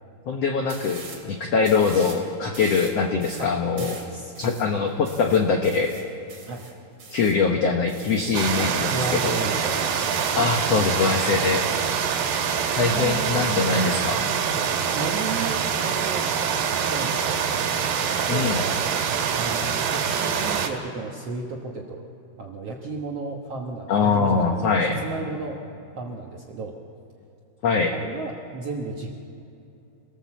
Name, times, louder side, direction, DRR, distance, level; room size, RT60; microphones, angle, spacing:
voice 1, 0.3-4.0 4.4-6.0 7.1-9.3 10.3-11.6 12.8-14.2 18.3-18.6 23.9-25.0 27.6-27.9, left 5 dB, 80° left, 3 dB, 1.4 m, -23 dB
sound 1, 0.7-1.3 1.6-2.2 2.5-7.4 7.9-8.6 8.9-10.4, right 4 dB, 40° right, 3.2 m, -43 dB
voice 2, 3.8-4.3 6.4-6.7 8.6-10.5 12.7-13.9 14.9-16.3 16.8-17.4 18.1-18.8 19.3-22.1 22.4-25.6 26.0-26.8 27.9-29.1, right 3 dB, 65° right, 0 dB, 1.5 m, -34 dB
sound 2, 8.3-20.7, right 7 dB, 90° right, 3.7 m, -25 dB
26.0 x 18.0 x 7.4 m, 2.7 s
omnidirectional pair, 4.5 m